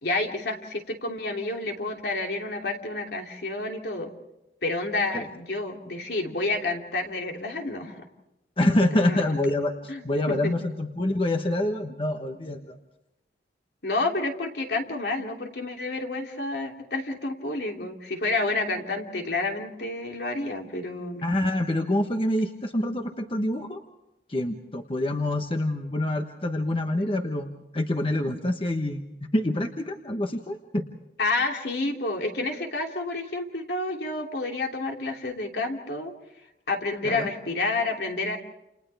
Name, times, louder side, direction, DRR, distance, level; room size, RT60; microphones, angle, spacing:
voice 1, 0.0-4.1 4.6-8.1 8.9-9.3 9.9-10.5 13.8-21.2 31.2-36.1 36.7-38.4, left 2 dB, 70° left, 2 dB, 3.0 m, -29 dB
voice 2, 8.6-12.8 21.2-23.8 24.3-29.1 29.3-30.8 37.0-37.3, left 1 dB, 30° left, 5 dB, 1.2 m, -26 dB
29.5 x 29.5 x 3.5 m, 0.89 s
head